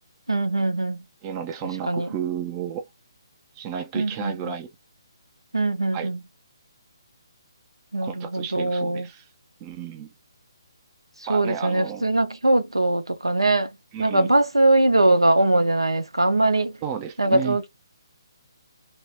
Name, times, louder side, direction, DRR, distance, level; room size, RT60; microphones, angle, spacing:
voice 1, 0.3-1.0 1.9-2.1 3.9-4.4 5.5-6.2 7.9-9.1 11.3-13.7 14.0-16.8 17.2-17.7, right 2 dB, 85° right, 0.6 m, -21 dB
voice 2, 1.2-2.9 3.6-4.7 5.9-6.1 8.0-9.3 9.6-10.1 11.3-12.1 13.9-14.3 16.8-17.6, right 8 dB, 20° right, 0.4 m, -32 dB
2.3 x 2.1 x 3.1 m
figure-of-eight pair, 140°, 3 cm